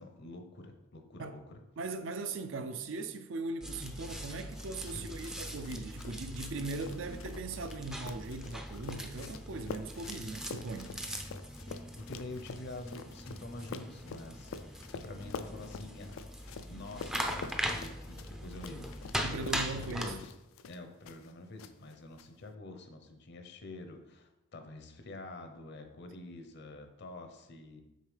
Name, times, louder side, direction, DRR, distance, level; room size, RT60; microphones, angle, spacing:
voice 1, 0.0-1.6 4.9-5.3 12.0-16.2 16.7-20.3 20.7-27.8, left 2 dB, 55° left, 0.7 m, -47 dB
voice 2, 1.8-10.9 19.2-20.2, right 3 dB, 65° right, 0.5 m, -39 dB
sound 1, 3.6-20.2, equal, 5° right, 0.4 m, -41 dB
sound 2, 4.6-21.3 21.6-22.2, left 5 dB, 80° left, 0.4 m, -47 dB
6.5 x 4.5 x 3.3 m
head